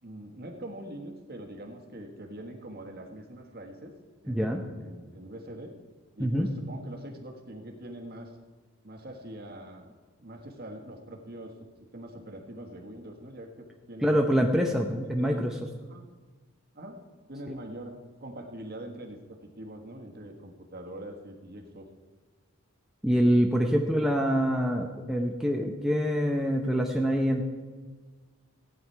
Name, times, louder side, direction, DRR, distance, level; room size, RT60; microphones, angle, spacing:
voice 1, 0.0-3.9 4.2-5.7 6.2-8.3 8.8-9.9 10.2-11.5 11.9-14.6 15.0-15.5 15.8-16.1 16.7-17.0 17.3-21.9, right 1 dB, 45° right, 3 dB, 1.5 m, -43 dB
voice 2, 4.3-4.6 6.2-6.5 14.0-15.5 23.0-27.5, equal, ahead, 0 dB, 0.7 m, -25 dB
15.5 x 9.4 x 4.6 m, 1.4 s
head